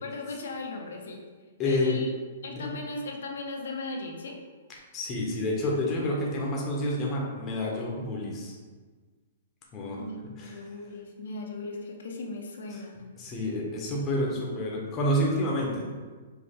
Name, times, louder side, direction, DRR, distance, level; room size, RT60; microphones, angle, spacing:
voice 1, 0.0-1.2 1.7-2.1 2.4-4.3 10.0-12.9, left 3 dB, 80° left, 1 dB, 0.8 m, -37 dB
voice 2, 1.6-2.0 2.5-2.8 4.9-8.5 9.7-10.0 10.4-10.6 12.7-12.8 13.2-15.8, left 1 dB, 20° left, -3 dB, 0.7 m, -29 dB
5.1 x 2.1 x 4.3 m, 1.4 s
hypercardioid pair, 170°, 0 cm